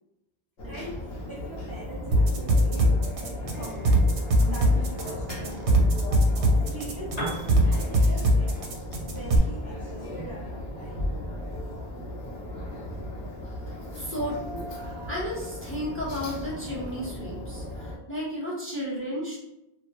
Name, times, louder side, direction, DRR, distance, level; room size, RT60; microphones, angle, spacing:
sound 1, 0.6-18.0, left 1 dB, 70° left, 0.8 m, -36 dB
voice 1, 0.6-3.0 3.5-5.9 6.5-8.6 9.0-11.1, right 2 dB, 30° right, -7 dB, 0.4 m, -42 dB
sound 2, 2.1-9.4, equal, 85° right, 0.9 m, -21 dB
Piano, 7.0-14.9, right 1 dB, 40° left, 0.9 m, -44 dB
voice 2, 13.9-14.7 15.1-19.4, equal, 15° left, -6 dB, 0.6 m, -33 dB
2.2 x 2.1 x 2.8 m, 0.90 s
omnidirectional pair, 1.1 m